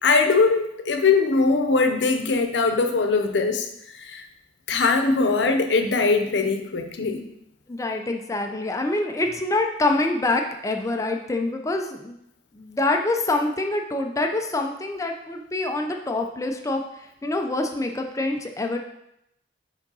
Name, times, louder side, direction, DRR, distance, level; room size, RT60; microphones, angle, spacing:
voice 1, 0.0-3.7 4.1-4.2 4.7-7.2, left 4 dB, 75° left, 5 dB, 0.7 m, -21 dB
voice 2, 7.7-12.2 12.5-18.8, left 2 dB, 20° left, 3 dB, 0.5 m, -26 dB
4.9 x 3.8 x 5.4 m, 0.80 s
head